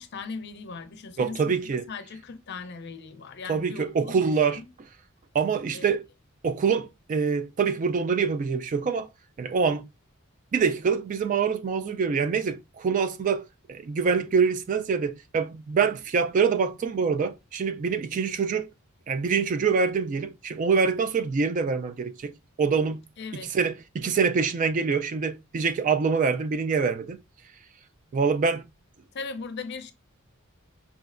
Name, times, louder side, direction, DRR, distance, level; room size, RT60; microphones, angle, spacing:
voice 1, 0.0-4.7 5.7-6.0 23.2-23.5 29.1-29.9, left 4 dB, 50° left, 0.5 m, -39 dB
voice 2, 1.2-1.8 3.5-4.6 5.3-6.0 6.4-9.1 9.4-9.9 10.5-18.7 19.1-22.3 22.6-23.0 23.3-27.2 28.1-28.6, right 5 dB, 35° right, 0.3 m, -25 dB
4.8 x 3.1 x 2.4 m
head